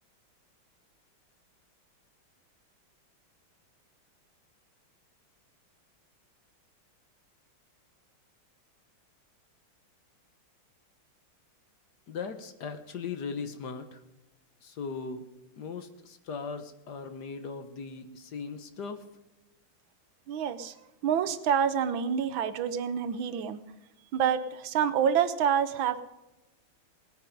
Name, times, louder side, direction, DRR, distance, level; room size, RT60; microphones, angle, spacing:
voice 1, 12.1-14.0 14.6-15.2 15.6-19.0, left 5 dB, 55° left, 9 dB, 1.5 m, -38 dB
voice 2, 20.3-20.7 21.0-23.6 24.1-26.0, right 8 dB, 75° right, 12 dB, 1.6 m, -27 dB
19.0 x 9.6 x 5.2 m, 0.99 s
omnidirectional pair, 2.3 m